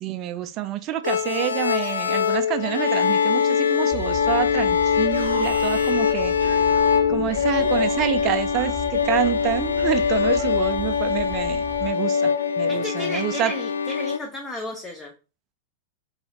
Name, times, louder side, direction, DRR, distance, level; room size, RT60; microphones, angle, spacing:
voice 1, 0.0-6.3 7.1-12.3 12.6-13.5, right 12 dB, 40° right, 0.3 m, -27 dB
sound 1, 1.0-14.2, left 6 dB, 80° left, 0.3 m, -23 dB
sound 2, 3.9-11.9, left 4 dB, 35° left, 0.9 m, -38 dB
Alarm, 5.1-7.1 7.5-10.8, right 4 dB, 80° right, 0.8 m, -39 dB
voice 2, 12.7-15.1, left 2 dB, 15° left, 0.5 m, -33 dB
2.5 x 2.3 x 2.9 m
figure-of-eight pair, 100°, 0 cm